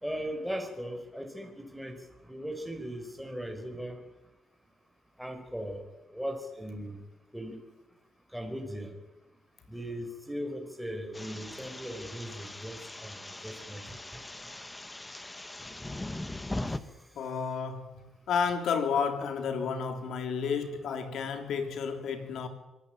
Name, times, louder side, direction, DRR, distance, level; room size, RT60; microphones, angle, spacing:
voice 1, 0.0-2.0 2.3-4.0 5.2-5.9 6.1-7.0 7.3-7.6 8.3-8.9 9.7-13.9, equal, ahead, 4.6 m, -38 dB
sound 1, 11.1-16.8, left 1 dB, 15° left, 1.5 m, -40 dB
voice 2, 17.2-22.5, left 6 dB, 70° left, 3.7 m, -31 dB
25.5 x 16.5 x 9.1 m
cardioid pair, 90°, 0 cm